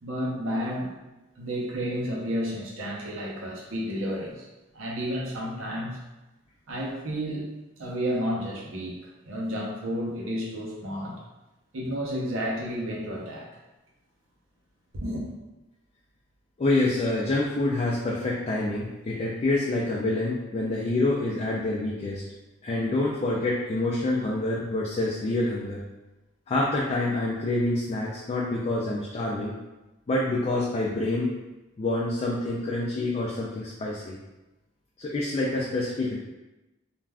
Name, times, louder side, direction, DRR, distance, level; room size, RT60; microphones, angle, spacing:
voice 1, 0.0-0.9 1.4-4.4 4.7-6.0 6.7-7.5 7.8-11.1 11.7-13.5 14.9-15.2, equal, 90° right, -3 dB, 0.7 m, -31 dB
voice 2, 16.6-22.2 22.6-25.8 26.5-29.5 30.1-31.3 31.8-34.2 35.0-36.2, left 2 dB, 30° left, -3 dB, 0.3 m, -27 dB
2.4 x 2.2 x 3.3 m, 1.0 s
head